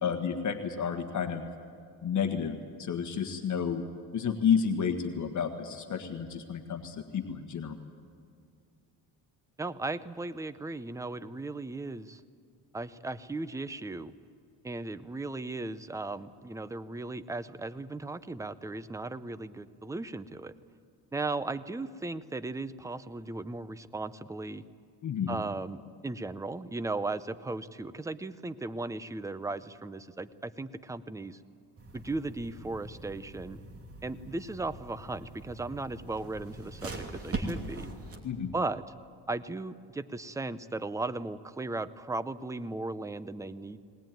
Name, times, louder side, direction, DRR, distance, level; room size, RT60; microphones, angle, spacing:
voice 1, 0.0-1.5 2.0-3.8 4.1-7.8 25.0-25.4 38.2-38.5, left 7 dB, 45° left, 5 dB, 1.6 m, -31 dB
voice 2, 9.6-12.2 12.7-14.1 14.6-20.5 21.1-24.6 25.3-31.4 31.9-33.6 34.0-37.9 38.5-38.8 39.3-43.8, right 2 dB, 10° right, 13 dB, 0.6 m, -36 dB
sound 1, 31.8-38.2, right 2 dB, 35° right, 2.9 m, -41 dB
20.0 x 19.5 x 9.1 m, 2.3 s
cardioid pair, 120°, 40 cm